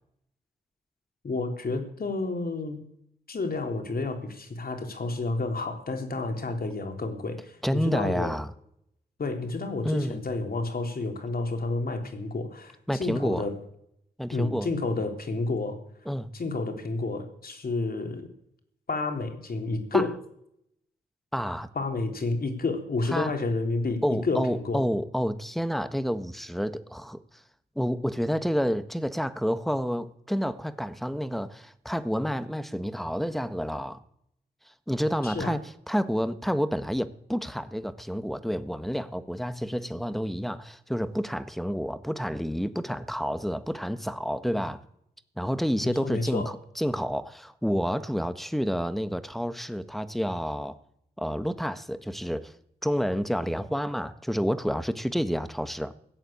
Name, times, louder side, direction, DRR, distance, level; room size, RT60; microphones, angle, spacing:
voice 1, 1.2-2.9 3.3-8.3 9.2-13.6 14.3-15.8 16.3-18.3 18.9-20.1 21.8-24.8 35.2-35.5 45.8-46.5, left 3 dB, 55° left, 3.5 m, -30 dB
voice 2, 7.6-8.5 9.8-10.2 12.9-13.5 14.2-14.7 16.0-16.3 19.9-20.1 21.3-21.7 23.1-23.3 24.0-27.2 27.7-34.0 34.9-35.6 35.9-44.8 45.4-50.8 51.2-52.5 52.8-55.9, equal, ahead, 1.5 m, -29 dB
16.5 x 7.7 x 8.8 m
supercardioid pair, 40°, 18 cm